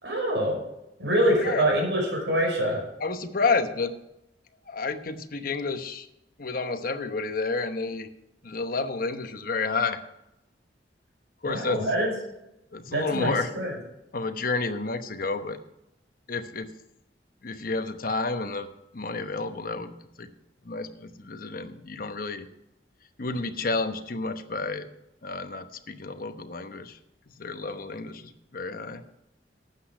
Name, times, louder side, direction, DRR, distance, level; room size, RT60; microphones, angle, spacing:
voice 1, 0.0-0.6 1.0-2.8 11.4-12.1 12.9-13.7, right 1 dB, 80° right, 0 dB, 5.3 m, -25 dB
voice 2, 3.0-3.9 4.7-6.1 6.4-8.1 8.4-10.0 11.4-11.8 12.7-13.5 14.1-15.6 16.3-16.7 17.4-18.7 18.9-20.3 20.6-22.5 23.2-24.9 25.2-27.0 27.4-29.0, left 3 dB, 55° left, 8 dB, 1.0 m, -30 dB
12.0 x 8.5 x 5.0 m, 0.87 s
head